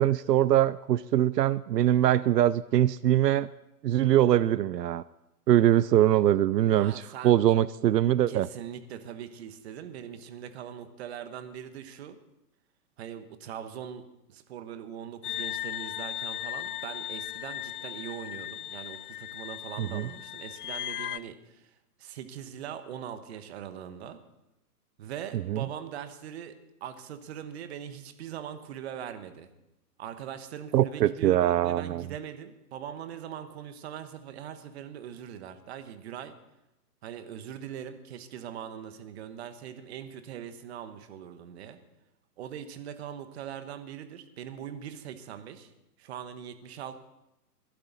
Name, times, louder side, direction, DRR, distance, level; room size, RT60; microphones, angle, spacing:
voice 1, 0.0-3.5 3.8-5.0 5.5-8.5 19.8-20.1 25.5-25.6 30.7-32.0, right 12 dB, 85° right, 18 dB, 0.6 m, -23 dB
voice 2, 6.7-7.4 8.3-12.2 13.0-21.7 22.0-24.2 25.0-26.5 26.8-29.5 30.0-36.3 37.0-41.8 42.4-45.7 46.0-47.0, right 9 dB, 40° right, 10 dB, 1.4 m, -41 dB
sound 1, 15.2-21.2, left 13 dB, 70° left, 0.6 m, -37 dB
22.0 x 12.0 x 4.1 m, 0.91 s
hypercardioid pair, 145°, 48 cm